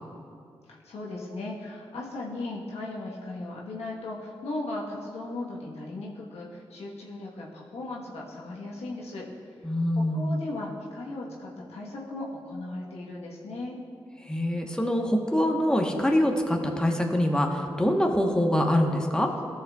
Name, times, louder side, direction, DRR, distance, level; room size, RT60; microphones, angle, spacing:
voice 1, 0.7-9.3 9.6-13.8, left 2 dB, 80° left, -4 dB, 1.2 m, -37 dB
voice 2, 9.6-10.3 14.2-19.3, left 1 dB, 5° left, 2 dB, 1.1 m, -24 dB
14.5 x 6.3 x 2.4 m, 2.4 s
supercardioid pair, 40°, 11 cm